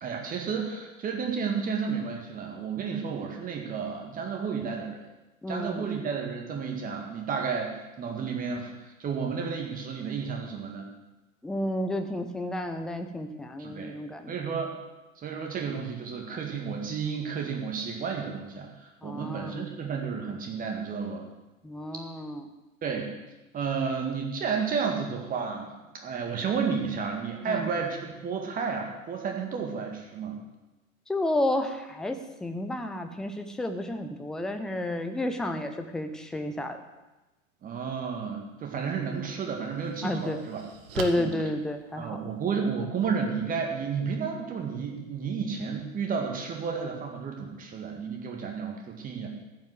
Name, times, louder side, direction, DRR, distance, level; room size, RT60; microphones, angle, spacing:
voice 1, 0.0-5.0 5.5-10.9 13.6-13.9 14.3-14.7 15.2-21.3 22.8-23.1 23.5-30.4 37.6-40.6 41.2-41.3 42.0-49.3, right 6 dB, 20° right, 2 dB, 2.0 m, -32 dB
voice 2, 5.4-5.9 11.4-14.4 19.0-19.7 21.6-22.4 27.5-27.7 31.1-36.8 40.0-40.4 41.0-42.2, left 1 dB, ahead, 6 dB, 0.4 m, -31 dB
Table Riser, 38.7-38.9 39.4-42.5, right 5 dB, 45° right, 1.5 m, -41 dB
14.5 x 5.7 x 7.7 m, 1.1 s
figure-of-eight pair, 100°, 40 cm